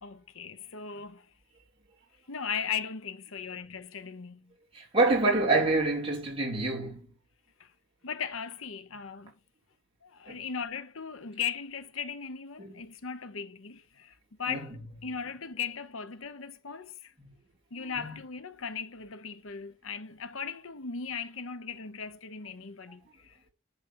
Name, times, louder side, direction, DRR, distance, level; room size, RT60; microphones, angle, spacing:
voice 1, 0.0-1.3 2.3-4.5 7.6-7.7 8.0-9.3 10.0-14.1 14.4-14.7 15.0-17.1 17.7-23.5, left 6 dB, 80° left, 1.0 m, -38 dB
voice 2, 4.7-7.1 10.3-10.4 12.6-12.8 14.5-14.7 17.8-18.2, right 2 dB, 25° right, 3.8 m, -27 dB
11.0 x 4.0 x 6.4 m
head